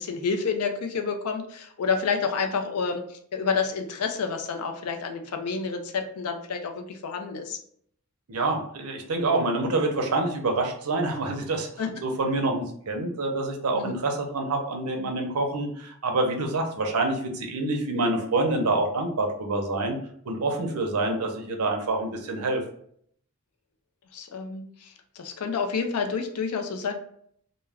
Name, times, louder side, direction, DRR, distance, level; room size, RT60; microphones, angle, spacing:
voice 1, 0.0-7.6 11.8-11.9 13.7-13.9 24.1-26.9, left 5 dB, 75° left, 5 dB, 0.4 m, -29 dB
voice 2, 8.3-11.7 12.0-20.0 20.3-22.6, right 2 dB, 75° right, 3 dB, 0.6 m, -27 dB
2.2 x 2.1 x 3.3 m, 0.64 s
head